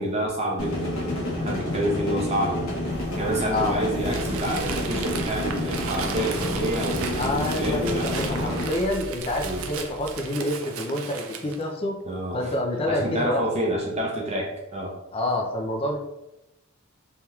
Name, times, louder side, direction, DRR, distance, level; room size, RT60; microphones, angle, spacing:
voice 1, 0.0-2.8 3.2-8.6 9.4-9.6 12.1-12.5 12.9-14.9, right 1 dB, 30° right, -2 dB, 0.7 m, -28 dB
sound 1, 0.6-8.7, left 1 dB, 70° left, 0.9 m, -29 dB
sound 2, 2.9-10.5, right 1 dB, 10° right, 1.2 m, -39 dB
voice 2, 3.5-3.8 7.2-12.0 12.3-13.7 15.1-16.0, left 1 dB, 25° left, 1 dB, 0.4 m, -28 dB
Crumpling crinkling, 4.0-11.6, right 6 dB, 75° right, 0.4 m, -36 dB
3.3 x 2.8 x 2.3 m, 0.93 s
head